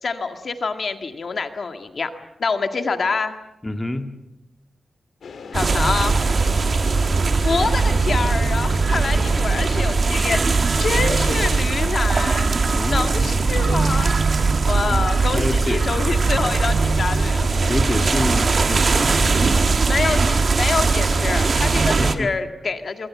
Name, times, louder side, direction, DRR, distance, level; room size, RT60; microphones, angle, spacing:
voice 1, 0.0-2.1 2.4-3.3 5.5-6.2 7.4-12.5 12.9-14.2 14.6-17.5 19.8-23.1, left 4 dB, 55° left, 7 dB, 1.9 m, -26 dB
voice 2, 3.6-4.1 12.7-13.4 14.9-15.9 17.5-19.1 22.0-22.3, left 1 dB, 15° left, 6 dB, 1.9 m, -28 dB
sound 1, 5.2-19.7, left 5 dB, 85° left, 2.5 m, -38 dB
sound 2, 5.5-22.2, right 4 dB, 50° right, 1.5 m, -20 dB
25.5 x 24.5 x 7.5 m, 0.89 s
wide cardioid pair, 125°, 0 cm